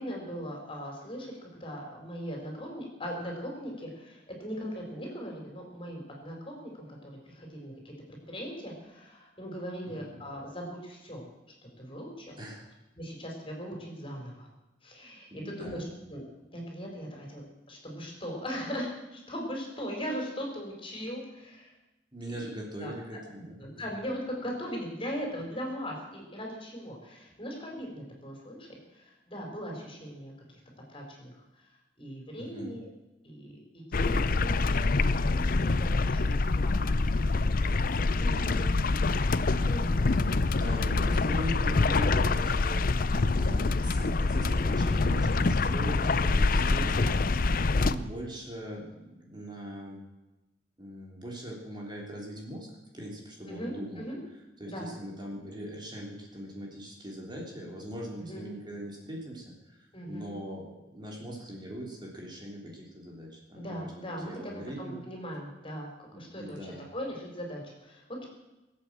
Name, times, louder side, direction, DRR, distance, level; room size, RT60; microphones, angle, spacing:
voice 1, 0.0-1.3 1.6-7.9 8.3-11.2 11.8-12.4 13.0-14.5 14.8-16.2 16.5-17.4 17.7-21.7 22.8-22.9 23.6-30.3 30.9-31.4 32.0-32.9 33.2-34.9 35.2-37.0 38.5-39.0 39.5-40.1 40.6-41.1 46.5-47.1 53.5-54.2 54.6-54.9 58.2-58.5 59.9-60.4 63.5-66.6 66.9-68.3, equal, 30° left, 0 dB, 4.5 m, -39 dB
voice 2, 9.8-10.2 12.4-12.7 15.3-15.9 22.1-23.8 32.4-32.8 38.1-38.6 40.0-47.2 47.7-50.0 50.8-54.0 54.6-65.0 66.1-66.9, equal, 25° right, -1 dB, 3.3 m, -41 dB
sound 1, 33.9-47.9, left 3 dB, 50° left, 0.6 m, -26 dB
21.0 x 8.6 x 7.6 m, 1.0 s
head